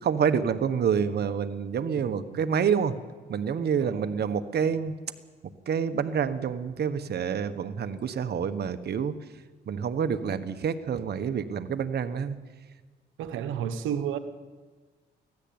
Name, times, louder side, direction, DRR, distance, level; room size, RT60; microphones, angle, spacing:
voice 1, 0.0-2.9 3.3-4.9 5.7-9.1 9.7-12.4, right 7 dB, 55° right, 1.4 m, -27 dB
voice 2, 2.0-2.5 3.8-4.2 13.2-14.2, right 9 dB, 90° right, 1.3 m, -33 dB
24.5 x 16.0 x 8.9 m
cardioid pair, 90°, 20 cm